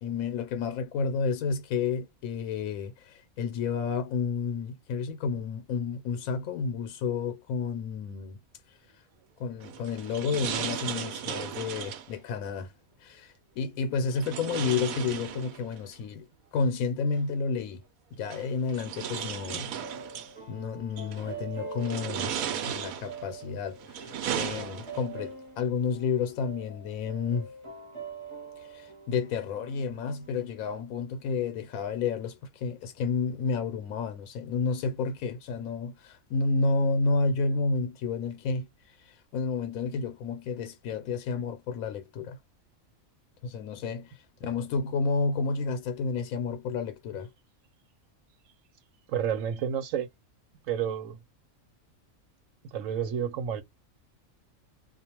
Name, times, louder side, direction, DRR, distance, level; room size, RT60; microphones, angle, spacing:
voice 1, 0.0-8.4 9.4-12.7 13.0-16.2 16.5-17.8 18.1-19.7 20.5-27.5 28.6-42.4 43.4-47.3, left 4 dB, 80° left, 1.0 m, -31 dB
sound 1, 9.6-12.1 14.1-15.8 17.2-17.3 18.2-20.3 21.0-21.3 21.8-23.3 23.8-25.2, right 9 dB, 90° right, 1.0 m, -35 dB
sound 2, 19.7-30.8, right 4 dB, 25° right, 0.8 m, -44 dB
voice 2, 49.1-50.1 50.7-51.2 52.7-53.6, right 8 dB, 75° right, 1.0 m, -30 dB
2.4 x 2.3 x 2.9 m
omnidirectional pair, 1.4 m